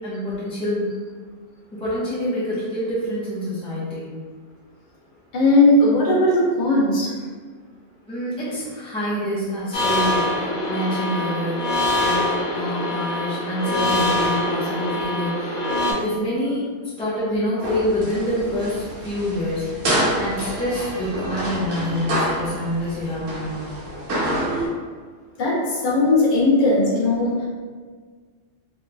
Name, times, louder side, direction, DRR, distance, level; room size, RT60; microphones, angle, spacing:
voice 1, 0.0-0.9 1.7-4.1 8.1-16.6 17.0-19.8 20.2-23.8, equal, 5° left, -10 dB, 0.8 m, -27 dB
voice 2, 5.3-7.1 25.4-27.4, left 2 dB, 45° left, -5 dB, 0.9 m, -18 dB
sound 1, 9.7-15.9, left 1 dB, 75° left, 1.3 m, -24 dB
sound 2, 17.6-24.7, right 1 dB, 80° right, 1.2 m, -27 dB
3.6 x 3.2 x 2.2 m, 1.6 s
omnidirectional pair, 1.3 m